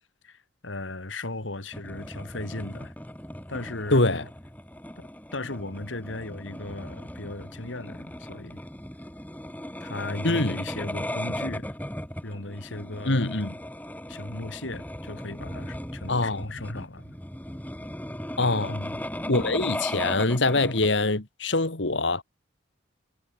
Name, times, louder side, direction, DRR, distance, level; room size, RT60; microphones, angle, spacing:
voice 1, 0.2-2.9 3.5-4.0 5.0-8.6 9.8-11.7 12.2-13.3 14.1-17.1 18.7-19.0, left 2 dB, 85° left, 2.6 m, -37 dB
sound 1, 1.7-20.9, left 1 dB, 10° left, 4.8 m, -37 dB
voice 2, 3.9-4.2 10.2-10.6 13.1-13.5 16.1-16.5 18.4-18.8 19.3-22.2, left 2 dB, 70° left, 2.1 m, -24 dB
head